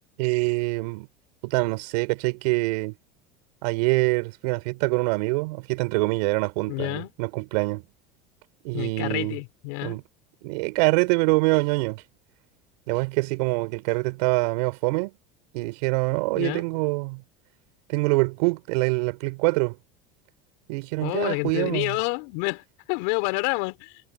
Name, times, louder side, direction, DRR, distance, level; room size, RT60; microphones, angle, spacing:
voice 1, 0.2-1.1 1.4-2.9 3.6-7.8 8.6-9.4 9.8-10.0 10.4-12.0 12.9-15.1 15.5-17.2 17.9-19.8 20.7-22.0, right 27 dB, 75° right, 7.2 m, -25 dB
voice 2, 6.7-7.1 8.7-10.0 16.4-16.6 21.0-22.6 22.9-23.9, left 32 dB, 70° left, 6.6 m, -28 dB
supercardioid pair, 95°, 21 cm